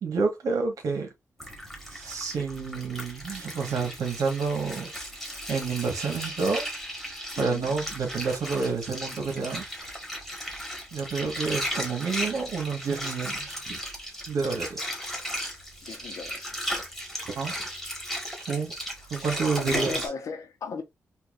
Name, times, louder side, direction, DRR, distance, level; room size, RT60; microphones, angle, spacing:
voice 1, 0.0-1.1 1.9-4.9 5.5-6.7 7.4-9.6 10.9-13.8 14.3-14.9 17.3-17.6 18.5-18.7 19.1-20.1, right 4 dB, 75° right, 1.4 m, -29 dB
Water, 1.4-20.1, equal, ahead, 1.6 m, -36 dB
voice 2, 7.4-7.7 15.8-16.5 18.8-18.9 19.6-20.8, left 5 dB, 75° left, 1.0 m, -37 dB
4.5 x 2.6 x 2.5 m
cardioid pair, 85°, 6 cm